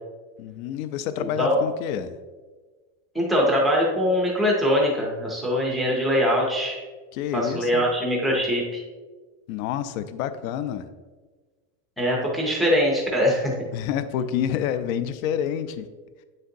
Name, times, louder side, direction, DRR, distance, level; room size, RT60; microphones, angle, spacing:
voice 1, 0.4-2.2 7.1-7.9 9.5-10.9 13.7-15.9, left 9 dB, 75° left, 11 dB, 0.6 m, -28 dB
voice 2, 1.2-1.6 3.1-6.8 7.3-8.8 12.0-13.5, equal, ahead, -2 dB, 0.3 m, -22 dB
8.5 x 6.4 x 2.6 m, 1.4 s
cardioid pair, 175°, 42 cm